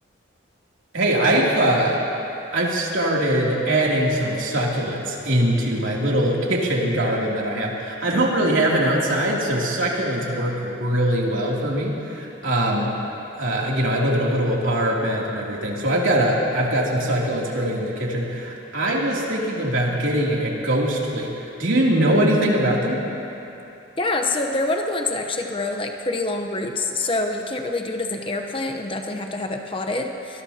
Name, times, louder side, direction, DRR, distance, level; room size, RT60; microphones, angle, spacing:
voice 1, 0.9-2.0 2.5-12.9 13.3-21.3 21.6-23.0, right 1 dB, 75° right, -4 dB, 2.9 m, -22 dB
voice 2, 24.0-30.4, left 2 dB, 25° left, 4 dB, 0.9 m, -26 dB
24.0 x 20.5 x 2.9 m, 2.9 s
head